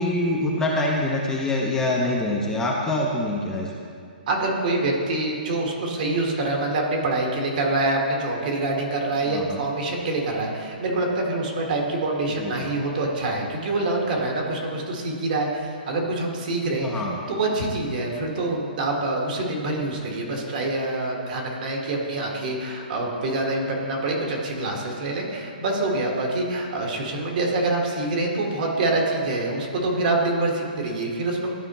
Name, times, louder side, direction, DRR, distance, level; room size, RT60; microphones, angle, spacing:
voice 1, 0.0-3.7 9.2-9.6 12.4-12.7 16.7-17.2, left 1 dB, 10° left, -2 dB, 0.7 m, -25 dB
voice 2, 4.3-31.5, right 2 dB, 55° right, 0 dB, 1.6 m, -26 dB
12.0 x 4.3 x 3.0 m, 2.4 s
hypercardioid pair, 145°, 5 cm